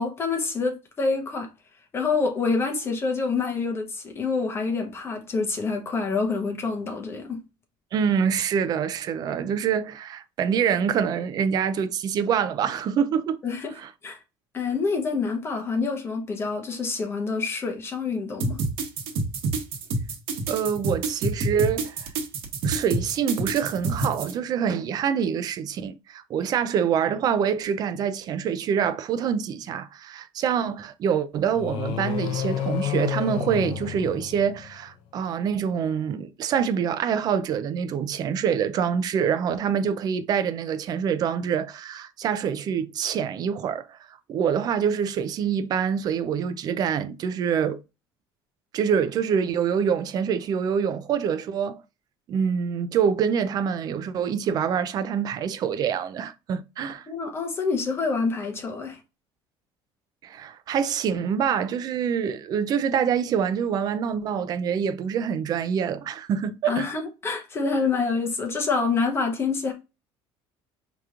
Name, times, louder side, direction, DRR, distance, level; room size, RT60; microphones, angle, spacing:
voice 1, 0.0-1.5 1.9-7.4 13.4-13.7 14.0-14.2 14.5-18.6 57.1-59.0 66.7-69.7, left 4 dB, 25° left, 0.9 m, -27 dB
voice 2, 7.9-13.4 13.8-13.9 20.5-22.1 22.6-47.8 48.7-51.8 52.3-57.1 60.2-66.9, right 7 dB, 40° right, 0.4 m, -25 dB
sound 1, 18.4-24.3, right 3 dB, 65° right, 1.1 m, -27 dB
sound 2, 31.5-34.9, left 10 dB, 60° left, 0.5 m, -30 dB
4.8 x 3.0 x 2.4 m
cardioid pair, 150°, 10 cm